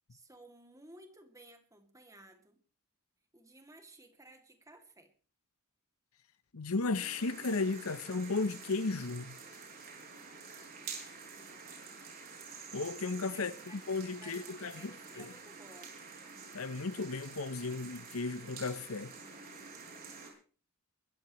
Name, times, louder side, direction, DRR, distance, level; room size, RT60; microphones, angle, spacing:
voice 1, 0.1-2.6 3.3-5.1 11.2-11.9 13.3-15.9, right 1 dB, 15° right, 2.5 m, -57 dB
voice 2, 6.5-9.3 12.7-15.3 16.5-19.1, left 3 dB, 80° left, 0.9 m, -35 dB
sound 1, 6.9-20.3, right 5 dB, 45° right, 6.2 m, -49 dB
23.0 x 14.5 x 3.1 m
head